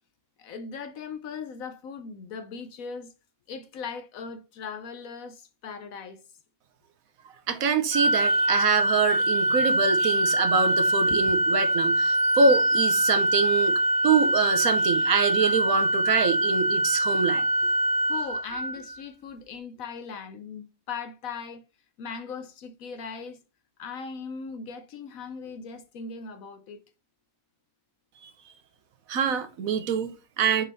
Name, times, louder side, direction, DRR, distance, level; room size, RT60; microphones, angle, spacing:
voice 1, 0.4-3.1 3.5-6.2 11.1-11.2 17.6-17.7 18.0-21.6 22.0-23.4 23.8-26.8, left 5 dB, 75° left, 1.1 m, -39 dB
voice 2, 7.5-17.4 28.2-28.3 29.1-30.6, right 5 dB, 75° right, 1.3 m, -25 dB
Organ, 7.9-19.0, right 1 dB, 30° right, 0.4 m, -24 dB
6.0 x 4.0 x 4.1 m
omnidirectional pair, 1.5 m